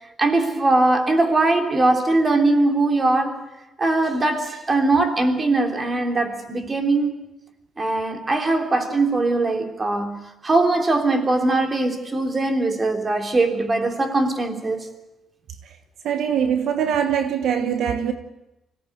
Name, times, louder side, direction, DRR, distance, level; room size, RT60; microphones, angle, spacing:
voice 1, 0.2-3.4 3.8-7.2 7.8-14.9, right 2 dB, 30° right, 3.4 m, -21 dB
voice 2, 16.0-18.1, right 8 dB, 75° right, 1.3 m, -22 dB
25.5 x 18.0 x 8.1 m
cardioid pair, 90°, 0 cm